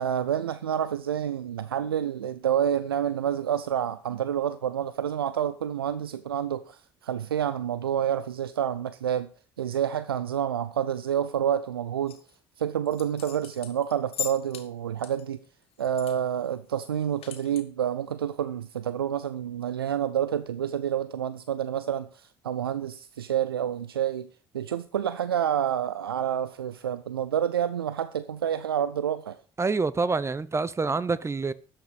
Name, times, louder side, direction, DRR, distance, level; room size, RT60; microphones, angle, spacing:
voice 1, 0.0-9.3 9.6-12.2 12.6-15.4 15.8-24.3 24.5-29.4, right 9 dB, 85° right, 0.5 m, -28 dB
sound 1, 12.1-12.3 12.8-14.7 15.0-16.2 16.4-16.5 16.9-17.6, left 11 dB, 50° left, 2.2 m, -39 dB
voice 2, 29.6-31.5, right 4 dB, 25° right, 0.9 m, -26 dB
13.5 x 8.8 x 5.2 m
figure-of-eight pair, 55°, 12 cm